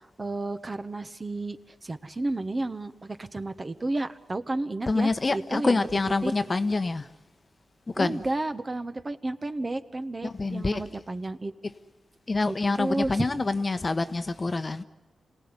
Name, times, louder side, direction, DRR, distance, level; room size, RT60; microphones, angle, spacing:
voice 1, 0.2-5.8 6.2-6.3 8.0-11.5 12.5-13.3, right 2 dB, 35° right, 1.3 m, -32 dB
voice 2, 4.9-7.1 7.9-8.2 10.2-10.8 12.3-14.8, left 3 dB, 40° left, 1.1 m, -26 dB
26.5 x 17.5 x 9.8 m
cardioid pair, 50°, 0 cm